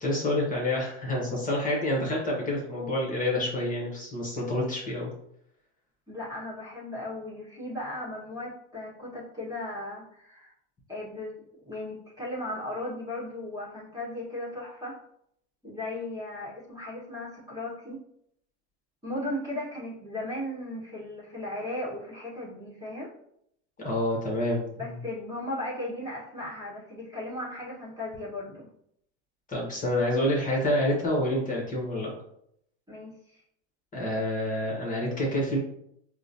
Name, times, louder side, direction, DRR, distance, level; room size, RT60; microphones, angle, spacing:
voice 1, 0.0-5.1 23.8-24.7 29.5-32.1 33.9-35.6, left 1 dB, 25° left, -3 dB, 1.1 m, -28 dB
voice 2, 6.1-10.5 10.9-11.3 11.6-15.0 15.6-18.0 19.0-23.1 24.8-28.7 32.9-33.4, left 1 dB, 10° right, -7 dB, 1.3 m, -36 dB
4.6 x 2.1 x 2.7 m, 0.74 s
supercardioid pair, 105°, 35 cm